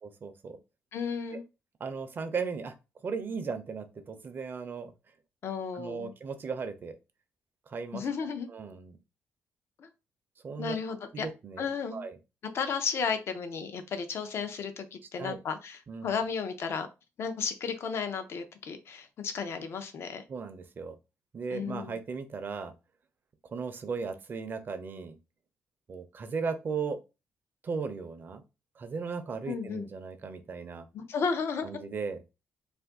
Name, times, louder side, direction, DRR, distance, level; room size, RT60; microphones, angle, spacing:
voice 1, 0.0-0.6 1.3-1.4 1.8-2.7 3.0-4.9 5.7-7.0 7.7-8.1 8.5-9.0 10.4-10.8 11.1-12.2 15.2-15.4 15.9-16.1 20.3-21.0 21.3-22.7 23.5-25.2 25.9-27.0 27.6-28.4 28.8-30.9 31.6-32.2, right 5 dB, 40° right, 0.6 m, -36 dB
voice 2, 0.9-1.4 5.4-6.1 7.9-8.5 9.8-9.9 10.6-11.3 11.6-12.0 12.5-16.9 17.2-20.2 21.5-22.0 29.5-29.9 30.9-31.8, left 6 dB, 55° left, 0.6 m, -33 dB
2.5 x 2.5 x 3.6 m
cardioid pair, 100°, 5 cm